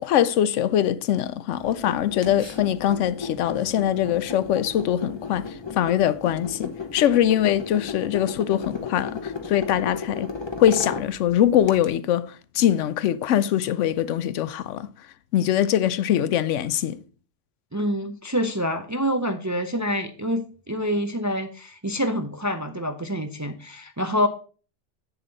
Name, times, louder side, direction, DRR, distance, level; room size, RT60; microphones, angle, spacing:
voice 1, 0.0-10.3 10.6-14.9 15.3-17.0, left 11 dB, 90° left, 0.9 m, -22 dB
sound 1, 1.6-11.9, left 4 dB, 25° left, 0.9 m, -35 dB
voice 2, 17.7-24.3, equal, 25° right, 0.4 m, -26 dB
8.6 x 6.9 x 3.9 m
omnidirectional pair, 1.2 m